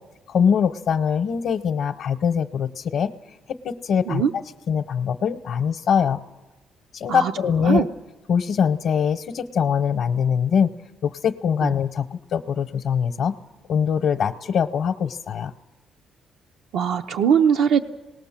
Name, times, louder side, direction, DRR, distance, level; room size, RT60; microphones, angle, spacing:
voice 1, 0.3-3.1 3.6-4.2 4.7-6.2 6.9-7.9 8.3-10.7 11.0-13.4 13.7-15.5, left 7 dB, 65° left, 7 dB, 0.8 m, -22 dB
voice 2, 16.7-17.8, right 7 dB, 90° right, 5 dB, 0.7 m, -20 dB
26.5 x 19.5 x 7.4 m, 1.2 s
cardioid pair, 120°, 0 cm